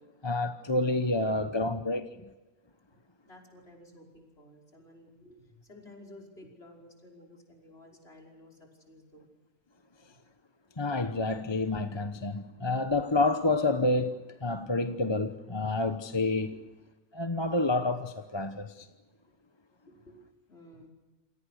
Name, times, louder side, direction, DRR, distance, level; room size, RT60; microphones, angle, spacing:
voice 1, 0.2-2.1 10.8-16.5 17.1-18.9, left 2 dB, 20° left, 1.0 m, -29 dB
voice 2, 1.2-2.0 3.2-9.3 10.1-10.2 16.5-16.6 19.9-20.9, left 1 dB, 45° left, 5.9 m, -53 dB
28.5 x 26.5 x 6.6 m
omnidirectional pair, 1.4 m